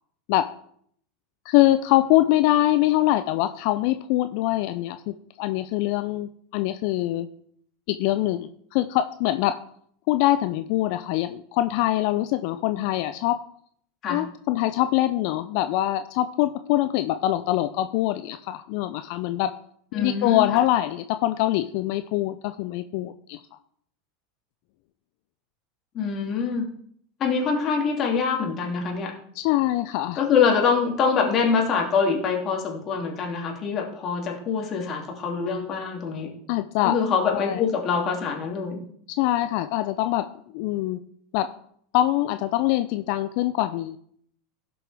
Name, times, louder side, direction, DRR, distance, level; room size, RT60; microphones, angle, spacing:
voice 1, 1.5-7.3 7.9-9.6 10.1-13.4 14.1-19.5 19.9-23.4 29.4-30.2 36.5-37.0 37.3-37.6 39.1-40.3 40.5-41.0 41.3-41.5 41.9-44.0, left 15 dB, 60° left, 11 dB, 0.5 m, -24 dB
voice 2, 19.9-20.4 25.9-26.7 27.2-29.1 30.2-36.3 36.8-38.8, left 5 dB, 40° left, 1 dB, 2.7 m, -24 dB
16.5 x 6.1 x 3.5 m, 0.64 s
hypercardioid pair, 85°, 0 cm